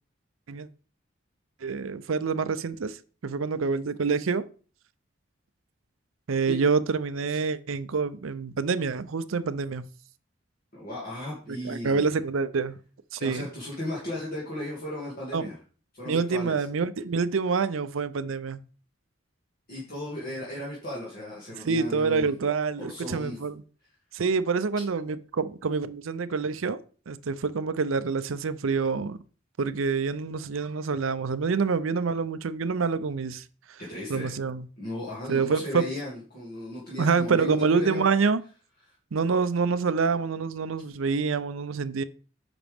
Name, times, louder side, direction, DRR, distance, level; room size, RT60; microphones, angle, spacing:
voice 1, 1.6-4.5 6.3-9.9 11.5-12.8 13.1-13.5 15.3-15.5 16.1-18.6 21.6-23.6 24.1-26.8 27.1-29.2 29.6-33.8 34.1-34.7 35.3-35.8 37.0-38.4 39.1-42.0, right 5 dB, 80° right, 0.5 m, -27 dB
voice 2, 10.7-12.1 13.2-15.6 15.9-16.6 19.7-22.3 22.8-23.4 33.8-34.3 34.8-38.0, left 1 dB, 50° left, 2.5 m, -36 dB
9.0 x 5.9 x 3.5 m
head